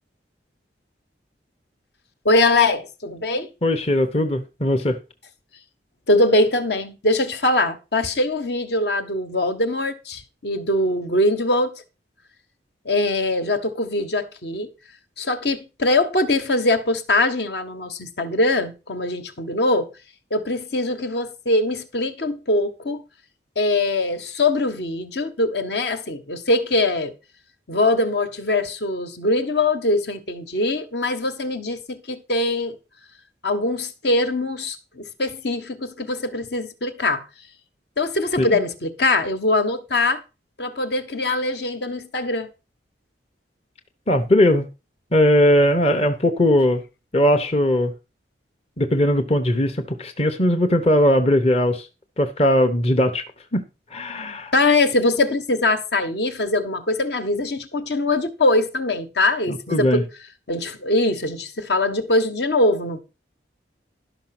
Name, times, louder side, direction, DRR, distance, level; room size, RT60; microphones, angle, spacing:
voice 1, 2.2-3.5 6.1-11.7 12.8-14.7 15.2-19.9 20.3-23.0 23.6-27.1 27.7-32.8 33.4-37.2 38.0-40.2 40.6-42.5 54.5-60.0 60.5-63.0, left 2 dB, 60° left, 1.4 m, -22 dB
voice 2, 3.6-5.0 38.4-38.5 44.1-44.7 45.1-46.8 47.1-47.9 48.8-51.9 52.2-53.2 53.5-53.6 53.9-54.5 59.5-60.0, left 1 dB, 30° left, 0.9 m, -19 dB
12.0 x 5.9 x 6.0 m
head